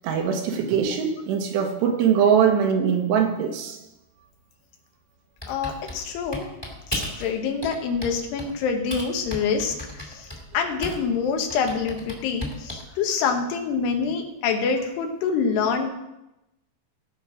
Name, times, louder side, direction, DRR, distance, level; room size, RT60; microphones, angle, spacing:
voice 1, 0.0-3.8, right 7 dB, 85° right, 3 dB, 3.5 m, -22 dB
Typing, 5.4-7.3 7.6-8.5 8.9-11.1 11.5-12.9, left 1 dB, 10° left, 1.2 m, -34 dB
voice 2, 5.5-6.5 6.9-9.7 10.1-10.3 10.5-15.9, left 5 dB, 80° left, 4 dB, 3.3 m, -26 dB
17.0 x 6.1 x 4.9 m, 0.92 s
omnidirectional pair, 4.8 m